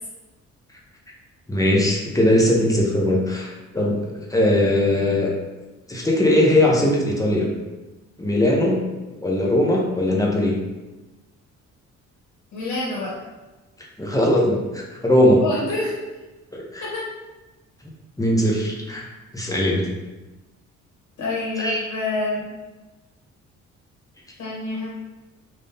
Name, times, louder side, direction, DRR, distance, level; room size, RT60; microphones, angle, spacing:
voice 1, 1.5-5.3 5.9-7.5 8.2-8.8 9.2-10.6 14.0-15.4 16.5-16.8 18.2-19.0 19.3-19.8 21.6-21.8, left 1 dB, 10° left, -2 dB, 0.8 m, -20 dB
voice 2, 12.5-13.1 15.4-16.0 16.8-17.1 21.2-22.5 24.4-24.9, left 2 dB, 70° left, -6 dB, 1.3 m, -27 dB
3.6 x 2.7 x 3.4 m, 1.1 s
cardioid pair, 90°, 30 cm